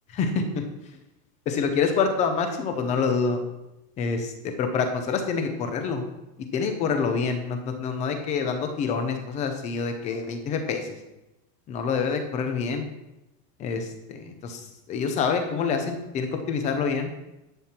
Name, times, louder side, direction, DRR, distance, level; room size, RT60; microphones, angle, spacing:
voice 1, 0.1-0.6 1.5-3.4 4.0-4.3 4.6-6.0 6.5-10.9 11.7-12.8 13.6-14.6 14.9-17.1, left 5 dB, 15° left, 6 dB, 0.6 m, -26 dB
11.0 x 7.6 x 4.3 m, 0.94 s
supercardioid pair, 180°, 46 cm